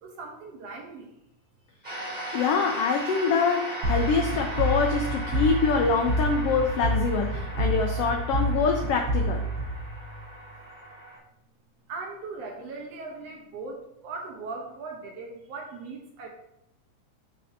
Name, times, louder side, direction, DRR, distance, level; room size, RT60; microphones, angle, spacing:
voice 1, 0.0-1.1 11.9-16.3, right 3 dB, 65° right, 1 dB, 1.8 m, -39 dB
sound 1, 1.8-11.2, right 1 dB, 15° right, 1.8 m, -38 dB
voice 2, 2.3-9.4, left 5 dB, 85° left, 3 dB, 1.3 m, -25 dB
sound 2, 3.8-10.5, right 2 dB, 85° right, 2.9 m, -28 dB
7.5 x 5.5 x 2.7 m, 0.87 s
omnidirectional pair, 3.4 m